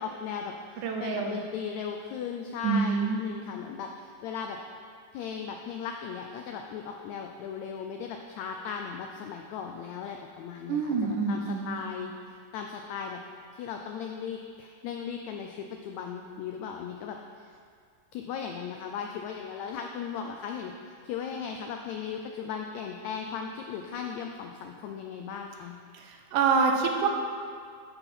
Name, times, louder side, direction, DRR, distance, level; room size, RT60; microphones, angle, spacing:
voice 1, 0.0-4.6 5.1-12.1 12.5-13.2 13.5-17.5 18.1-20.7 21.0-25.7, left 7 dB, 85° left, 3 dB, 1.6 m, -37 dB
voice 2, 0.8-1.4 2.6-3.2 10.7-11.8 25.9-27.1, right 5 dB, 80° right, 3 dB, 2.3 m, -27 dB
11.0 x 4.1 x 5.7 m, 2.2 s
omnidirectional pair, 3.7 m